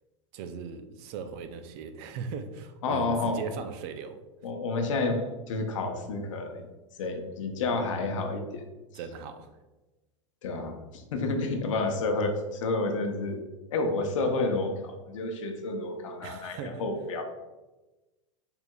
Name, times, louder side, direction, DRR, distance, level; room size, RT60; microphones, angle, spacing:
voice 1, 0.3-4.2 8.9-9.5 16.2-16.8, right 6 dB, 55° right, 9 dB, 0.5 m, -38 dB
voice 2, 2.8-3.4 4.4-6.7 7.0-8.6 10.4-13.4 13.7-17.2, left 3 dB, 80° left, 5 dB, 0.7 m, -30 dB
4.5 x 3.4 x 2.3 m, 1.1 s
hypercardioid pair, 115°, 16 cm